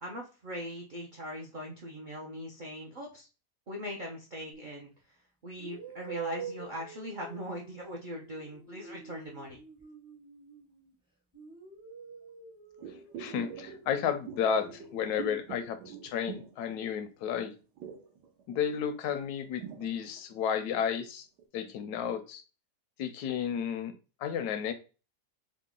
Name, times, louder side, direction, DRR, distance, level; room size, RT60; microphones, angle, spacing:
voice 1, 0.0-3.3 3.7-4.9 5.4-9.6, equal, 60° right, -2 dB, 0.4 m, -40 dB
sound 1, 4.5-4.8 5.6-10.9 11.3-15.3, right 6 dB, 5° right, 0.5 m, -47 dB
sound 2, 12.8-17.2 17.5-21.0 21.4-21.5, right 7 dB, 85° right, 1.4 m, -45 dB
voice 2, 13.2-17.5 18.5-21.3 21.5-22.4 23.0-23.9 24.2-24.7, left 8 dB, 75° left, 9 dB, 1.1 m, -32 dB
3.7 x 2.2 x 3.6 m, 0.33 s
omnidirectional pair, 1.8 m